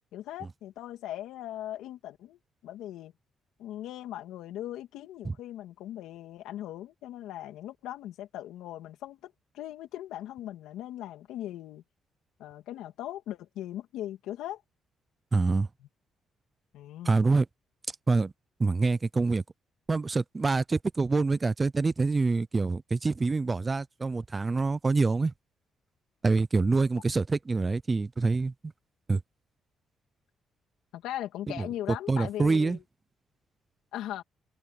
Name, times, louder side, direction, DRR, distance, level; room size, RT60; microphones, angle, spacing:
voice 1, 0.1-3.1 3.6-11.8 12.4-14.6 16.7-17.2 30.9-32.8 33.9-34.2, left 13 dB, 90° left, 2.7 m, -39 dB
voice 2, 15.3-15.7 17.1-17.5 18.1-18.3 18.6-19.4 19.9-25.3 26.2-28.7 29.1-29.2 31.5-31.7 32.1-32.8, right 3 dB, 25° right, 0.6 m, -26 dB
cardioid pair, 90°, 0 cm